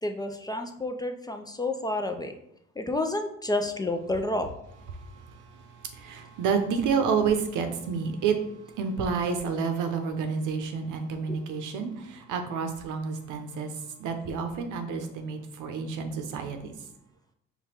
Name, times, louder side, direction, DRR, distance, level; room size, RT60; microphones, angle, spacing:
voice 1, 0.0-2.3 2.8-4.5 11.3-11.4, left 2 dB, 15° left, 6 dB, 0.4 m, -30 dB
voice 2, 6.0-8.4 8.8-11.9 12.3-13.7 14.0-16.7, right 6 dB, 85° right, 6 dB, 0.7 m, -29 dB
5.1 x 2.3 x 4.3 m, 0.76 s
cardioid pair, 90°, 30 cm